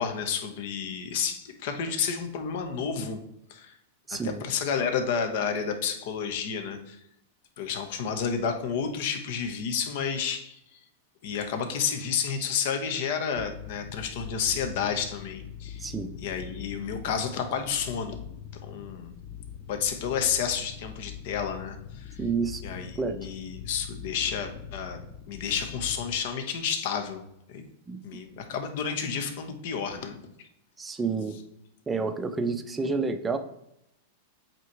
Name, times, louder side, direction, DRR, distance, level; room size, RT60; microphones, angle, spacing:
voice 1, 0.0-3.2 3.5-3.7 4.2-7.0 7.6-10.8 11.2-15.9 16.2-18.2 18.6-19.1 19.7-22.2 22.6-25.0 25.3-27.2 27.5-27.6 28.0-30.2, left 7 dB, 55° left, 6 dB, 1.0 m, -30 dB
voice 2, 4.1-4.4 15.8-16.1 22.2-22.6 23.0-23.2 27.9-28.0 30.8-31.4 31.9-33.4, right 4 dB, 10° right, 8 dB, 0.6 m, -29 dB
sound 1, 13.4-26.2, left 8 dB, 35° left, 0.4 m, -42 dB
7.9 x 3.0 x 4.7 m, 0.79 s
supercardioid pair, 145°, 0 cm